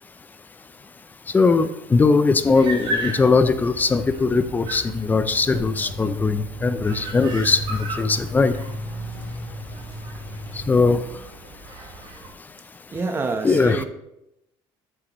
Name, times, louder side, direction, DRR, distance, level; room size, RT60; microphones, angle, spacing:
voice 1, 1.3-7.6 8.0-8.5 10.7-11.0 13.4-13.8, left 4 dB, 15° left, 12 dB, 0.5 m, -19 dB
sound 1, 2.4-12.3, right 1 dB, 65° right, 3.2 m, -36 dB
sound 2, 2.8-11.0, equal, ahead, 3.1 m, -36 dB
voice 2, 12.9-13.8, right 3 dB, 25° right, 6 dB, 0.9 m, -27 dB
7.9 x 7.6 x 3.0 m, 0.85 s
cardioid pair, 130°, 10 cm